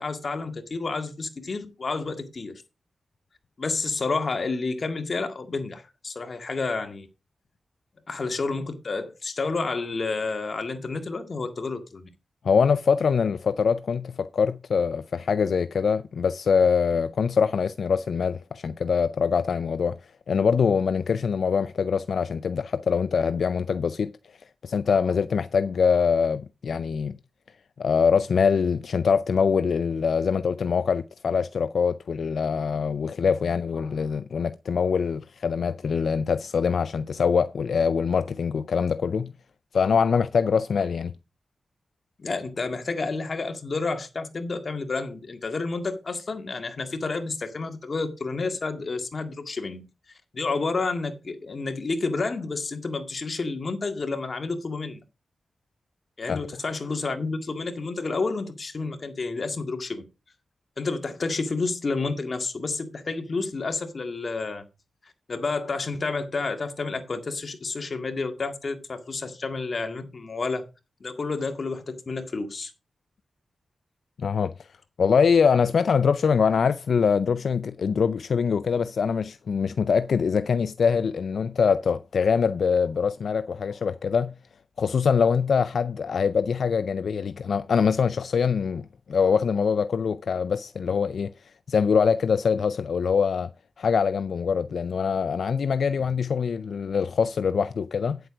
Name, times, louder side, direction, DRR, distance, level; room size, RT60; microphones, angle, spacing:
voice 1, 0.0-2.5 3.6-7.1 8.1-12.1 42.2-49.8 50.3-55.0 56.2-60.1 60.8-64.6 65.3-70.7 71.0-72.7, left 3 dB, 55° left, 1.9 m, -30 dB
voice 2, 12.4-20.0 20.3-24.1 24.6-27.1 27.8-39.3 39.7-41.1 56.3-56.4 74.2-74.5 75.0-84.3 84.8-91.3 91.7-93.5 93.8-98.2, left 6 dB, 85° left, 0.4 m, -23 dB
9.2 x 7.8 x 4.8 m
wide cardioid pair, 85°, 0 cm